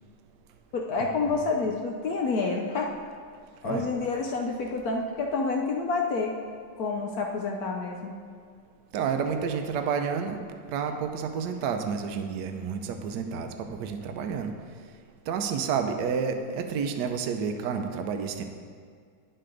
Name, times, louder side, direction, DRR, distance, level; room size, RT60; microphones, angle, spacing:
voice 1, 0.7-2.9 3.6-6.4 6.8-8.1, left 4 dB, 70° left, 1 dB, 0.9 m, -28 dB
voice 2, 8.9-10.4 10.7-14.5 15.3-18.4, right 6 dB, 70° right, 6 dB, 1.0 m, -30 dB
9.8 x 6.7 x 3.8 m, 2.1 s
omnidirectional pair, 2.3 m